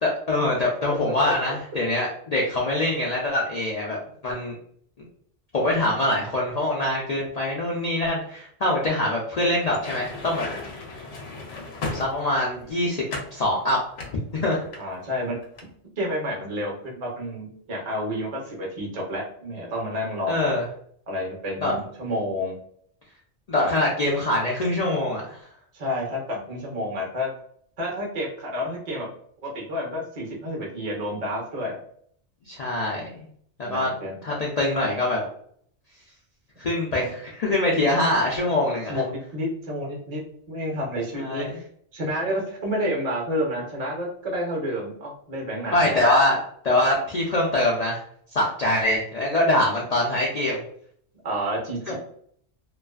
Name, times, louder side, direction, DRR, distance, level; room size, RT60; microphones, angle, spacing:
voice 1, 0.0-4.5 5.5-10.4 11.9-13.0 13.3-13.8 14.4-14.7 20.3-20.7 21.6-21.7 23.5-25.4 32.5-33.3 33.6-33.9 34.2-35.3 36.6-38.9 41.1-41.6 45.7-46.4 46.6-48.0 48.3-50.6 51.9-52.0, left 1 dB, 65° left, -3 dB, 0.4 m, -24 dB
sound 1, 9.6-12.6 13.1-13.4 14.0-15.2 15.4-15.7, left 2 dB, 85° left, 0.9 m, -35 dB
voice 2, 14.8-15.4 16.0-20.5 21.1-22.6 25.7-27.3 27.8-29.1 29.4-31.8 33.6-34.1 37.0-37.1 38.9-40.2 40.5-41.6 41.9-46.2 51.2-51.9, equal, 45° right, -1 dB, 0.6 m, -30 dB
2.4 x 2.3 x 2.3 m, 0.63 s
omnidirectional pair, 1.2 m